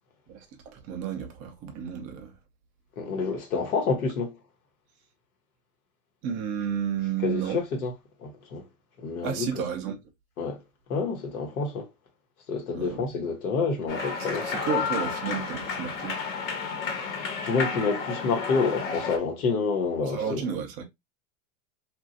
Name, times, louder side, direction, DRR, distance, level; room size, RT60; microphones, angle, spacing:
voice 1, 0.3-2.3 6.2-7.7 9.2-10.0 12.7-13.0 14.4-16.2 20.0-20.8, right 8 dB, 20° right, 0.3 m, -32 dB
voice 2, 3.0-4.4 7.2-7.9 8.2-8.6 9.0-9.5 10.4-10.6 10.9-11.9 12.5-14.5 17.4-20.4, left 4 dB, 80° left, 1.2 m, -28 dB
sound 1, 13.9-19.2, left 5 dB, 65° left, 1.2 m, -31 dB
3.0 x 2.5 x 2.4 m
supercardioid pair, 135°, 43 cm